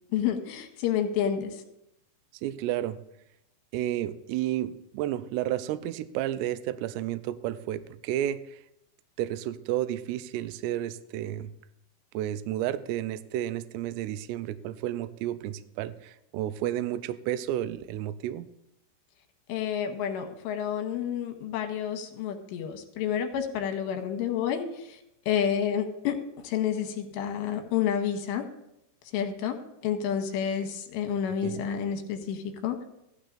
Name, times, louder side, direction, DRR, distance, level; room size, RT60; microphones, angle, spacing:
voice 1, 0.1-1.6 19.5-25.0 25.3-28.4 29.1-32.8, left 8 dB, 75° left, 6 dB, 3.0 m, -29 dB
voice 2, 2.4-3.0 3.7-8.6 9.2-11.5 12.1-18.5 31.4-31.6, right 12 dB, 90° right, 11 dB, 2.3 m, -31 dB
15.5 x 12.0 x 2.5 m, 0.86 s
omnidirectional pair, 5.3 m